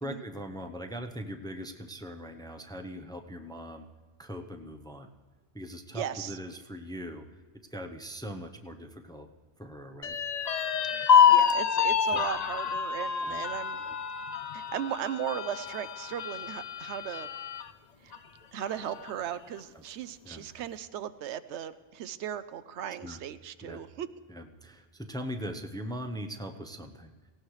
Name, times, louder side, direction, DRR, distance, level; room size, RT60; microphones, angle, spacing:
voice 1, 0.0-3.8 4.2-5.1 5.5-7.2 7.7-9.3 9.6-10.2 12.1-12.2 13.2-13.4 13.8-13.9 20.2-20.5 23.0-23.2 23.6-23.8 24.3-27.1, equal, 5° left, 5 dB, 0.6 m, -40 dB
voice 2, 5.9-6.4 10.9-13.8 14.5-17.3 18.0-18.1 18.5-24.1, right 10 dB, 90° right, 13 dB, 0.9 m, -37 dB
sound 1, 10.0-17.7 18.1-18.2 18.6-19.3, left 7 dB, 50° left, 0.5 m, -27 dB
18.0 x 16.5 x 3.2 m, 1.4 s
omnidirectional pair, 1.1 m